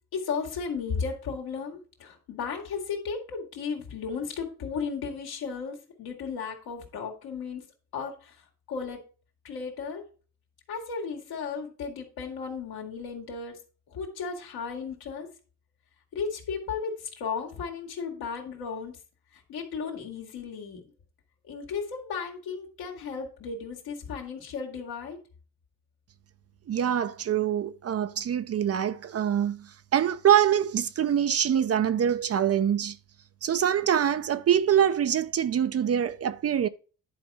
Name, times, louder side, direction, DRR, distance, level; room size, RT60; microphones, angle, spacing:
voice 1, 0.1-7.6 7.9-9.0 9.4-10.0 10.7-13.6 13.9-15.3 16.1-19.0 19.3-20.8 21.5-25.2, left 5 dB, 75° left, 2.5 m, -35 dB
voice 2, 26.7-33.0 33.4-36.7, right 9 dB, 40° right, 0.6 m, -24 dB
10.5 x 4.3 x 4.9 m
supercardioid pair, 70°, 37 cm